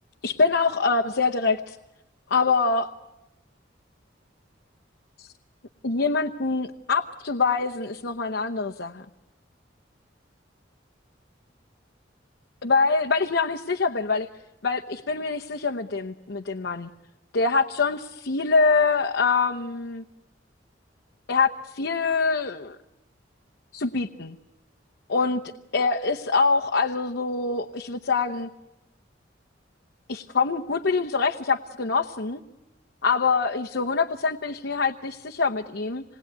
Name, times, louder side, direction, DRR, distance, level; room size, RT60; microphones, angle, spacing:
voice 1, 0.2-1.8 2.3-2.9 5.2-5.3 5.8-9.0 12.6-14.3 14.6-16.9 17.3-20.0 21.3-22.8 23.7-24.4 25.1-25.4 25.7-28.5 30.1-32.4 33.0-36.0, left 4 dB, 70° left, 2 dB, 0.9 m, -24 dB
26.5 x 20.5 x 9.5 m, 0.92 s
head